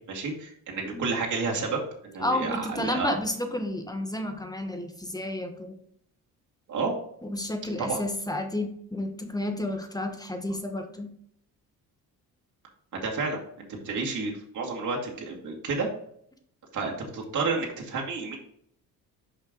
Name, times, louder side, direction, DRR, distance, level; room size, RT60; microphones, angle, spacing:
voice 1, 0.1-3.1 6.7-6.9 7.8-8.0 13.0-13.4 13.8-15.9 16.7-18.4, right 4 dB, 50° right, -1 dB, 2.3 m, -30 dB
voice 2, 2.2-5.8 7.2-11.1, left 1 dB, 10° left, 6 dB, 1.0 m, -31 dB
5.8 x 5.4 x 3.9 m, 0.67 s
cardioid pair, 95°, 38 cm